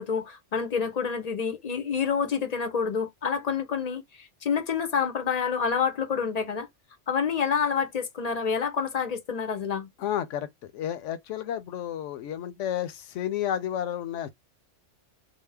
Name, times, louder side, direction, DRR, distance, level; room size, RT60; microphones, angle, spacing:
voice 1, 0.0-6.7 7.1-9.9, left 6 dB, 50° left, 0.5 m, -28 dB
voice 2, 10.0-14.3, left 10 dB, 75° left, 0.9 m, -31 dB
2.8 x 2.0 x 3.2 m
omnidirectional pair, 1.3 m